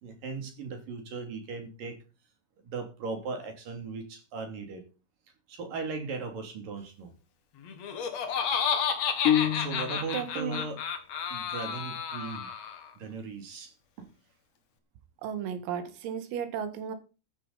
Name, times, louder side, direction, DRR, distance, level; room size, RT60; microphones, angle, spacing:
voice 1, 0.0-2.0 2.6-4.8 5.5-7.1 9.5-10.8 11.3-12.5 13.0-14.1, right 4 dB, 45° right, 4 dB, 4.1 m, -38 dB
Laughter, 7.7-12.9, left 7 dB, 60° left, 1.7 m, -31 dB
sound 1, 9.3-10.3, left 11 dB, 85° left, 3.7 m, -27 dB
voice 2, 10.1-10.6 15.2-17.0, right 8 dB, 85° right, 9 dB, 4.5 m, -34 dB
15.0 x 11.5 x 4.2 m, 0.32 s
omnidirectional pair, 5.9 m